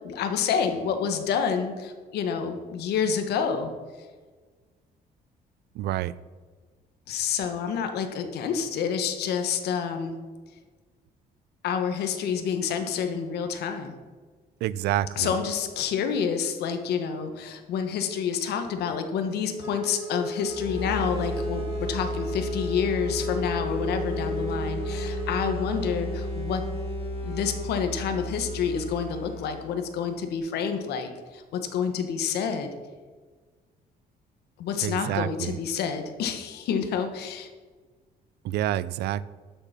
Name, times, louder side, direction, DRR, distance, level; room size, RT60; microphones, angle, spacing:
voice 1, 0.0-3.7 7.1-10.1 11.6-13.9 15.2-26.6 27.2-32.7 34.6-37.5, left 7 dB, 80° left, 7 dB, 1.4 m, -28 dB
voice 2, 5.8-6.1 14.6-15.4 34.8-35.6 38.4-39.2, right 12 dB, 85° right, 18 dB, 0.5 m, -28 dB
Wind instrument woodwind instrument, 19.6-26.0, left 1 dB, 15° right, 1.5 m, -34 dB
sound 1, 20.5-30.0, equal, 35° left, 4.1 m, -34 dB
12.0 x 7.0 x 5.9 m, 1.4 s
cardioid pair, 155°, 17 cm